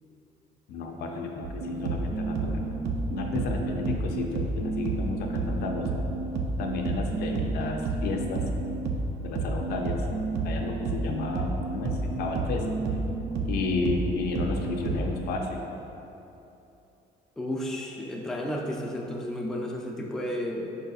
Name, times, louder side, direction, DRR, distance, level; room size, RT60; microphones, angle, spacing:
voice 1, 0.7-6.0 6.6-8.5 9.2-10.0 10.4-12.7 13.4-15.6, left 3 dB, 70° left, 2 dB, 0.5 m, -32 dB
sound 1, 1.4-15.0, right 2 dB, 75° right, 0.5 m, -30 dB
voice 2, 17.4-20.7, left 1 dB, 5° left, -1 dB, 0.4 m, -32 dB
5.1 x 4.0 x 2.3 m, 2.9 s
cardioid pair, 110°, 17 cm